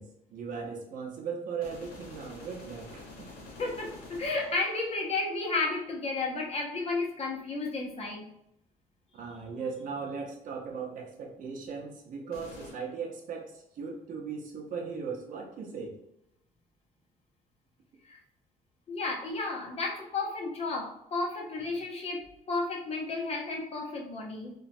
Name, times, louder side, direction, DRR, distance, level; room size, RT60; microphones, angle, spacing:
voice 1, 0.0-3.3 9.1-16.0, right 5 dB, 60° right, 1 dB, 0.7 m, -38 dB
sound 1, 1.6-5.7 12.3-12.7, left 3 dB, 80° left, 0.8 m, -48 dB
voice 2, 3.6-8.3 18.1-18.2 18.9-24.5, left 3 dB, 40° left, -1 dB, 0.7 m, -32 dB
3.0 x 2.2 x 2.6 m, 0.80 s
cardioid pair, 130°, 15 cm